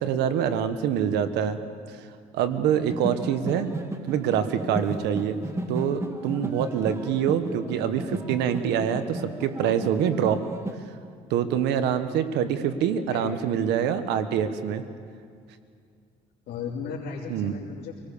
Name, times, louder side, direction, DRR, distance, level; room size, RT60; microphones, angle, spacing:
voice 1, 0.0-1.6 2.3-3.7 4.1-5.4 5.7-10.4 11.3-14.8 17.3-17.5, right 8 dB, 85° right, 10 dB, 1.3 m, -25 dB
sound 1, 2.9-10.8, right 1 dB, 15° right, 1.9 m, -34 dB
voice 2, 12.9-13.4 16.5-18.0, left 6 dB, 70° left, -4 dB, 2.8 m, -36 dB
26.5 x 18.5 x 7.0 m, 2.3 s
cardioid pair, 110°, 17 cm